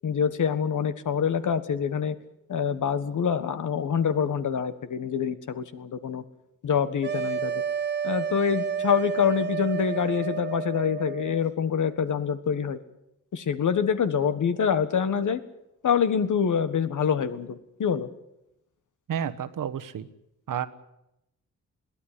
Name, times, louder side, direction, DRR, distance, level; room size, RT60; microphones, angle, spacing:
voice 1, 0.0-2.1 2.5-6.2 6.6-7.6 8.0-12.8 13.3-15.4 15.8-18.1, left 7 dB, 65° left, 12 dB, 1.5 m, -26 dB
sound 1, 7.0-11.4, right 7 dB, 35° right, 0.7 m, -30 dB
voice 2, 19.1-20.1 20.5-20.7, right 8 dB, 80° right, 12 dB, 1.3 m, -30 dB
22.0 x 16.0 x 10.0 m, 0.86 s
wide cardioid pair, 150°, 32 cm